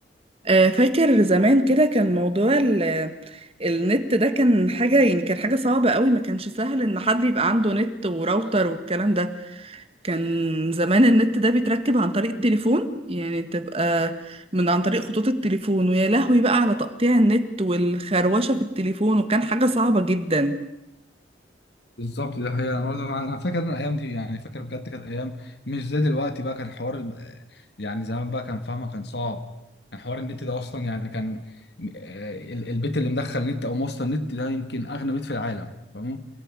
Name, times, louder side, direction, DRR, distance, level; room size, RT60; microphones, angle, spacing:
voice 1, 0.4-20.6, right 1 dB, 30° right, 1.7 m, -21 dB
voice 2, 22.0-29.5 29.9-31.5 31.8-36.3, left 1 dB, 60° left, 2.0 m, -29 dB
28.0 x 18.5 x 9.9 m
head